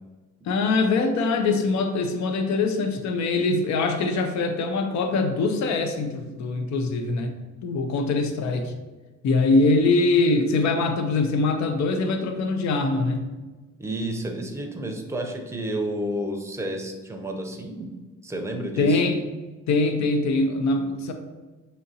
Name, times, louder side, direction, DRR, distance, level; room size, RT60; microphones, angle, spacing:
voice 1, 0.4-8.7 9.2-13.3 18.8-19.2 19.7-21.1, left 3 dB, 65° left, 6 dB, 0.6 m, -23 dB
voice 2, 13.8-17.9 18.2-19.0, right 1 dB, 10° right, 3 dB, 0.6 m, -31 dB
5.0 x 2.8 x 2.8 m, 1.2 s
cardioid pair, 90°, 30 cm